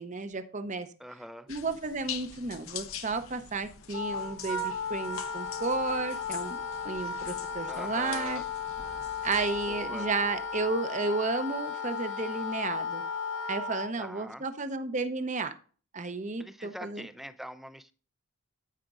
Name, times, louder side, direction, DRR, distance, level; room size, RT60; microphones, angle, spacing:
voice 1, 0.0-0.9 1.5-6.6 6.8-8.4 9.2-13.0 13.5-15.5 15.9-17.1, right 3 dB, 35° right, 10 dB, 0.7 m, -32 dB
voice 2, 1.0-1.5 7.7-8.4 9.7-10.1 14.0-14.5 16.4-17.9, equal, ahead, 11 dB, 0.4 m, -43 dB
sound 1, 1.5-9.9, left 9 dB, 75° left, 0.9 m, -44 dB
Wind instrument woodwind instrument, 3.9-13.9, left 5 dB, 60° left, 1.0 m, -35 dB
sound 2, 8.7-10.8, right 1 dB, 75° right, 1.5 m, -54 dB
15.0 x 5.1 x 2.4 m, 0.40 s
head